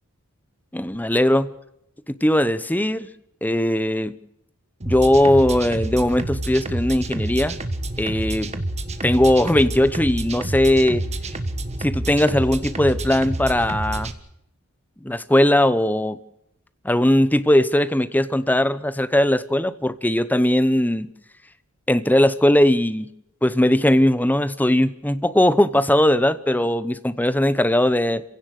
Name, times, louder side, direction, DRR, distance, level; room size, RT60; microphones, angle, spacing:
voice 1, 0.7-1.5 2.1-3.1 3.4-4.2 4.9-7.6 8.0-8.5 9.0-11.0 11.8-14.1 15.0-16.2 16.8-21.1 21.9-23.1 23.4-28.2, left 1 dB, 10° left, 13 dB, 0.9 m, -19 dB
sound 1, 4.8-14.1, right 1 dB, 30° right, 1.5 m, -28 dB
29.0 x 16.5 x 6.5 m, 0.81 s
head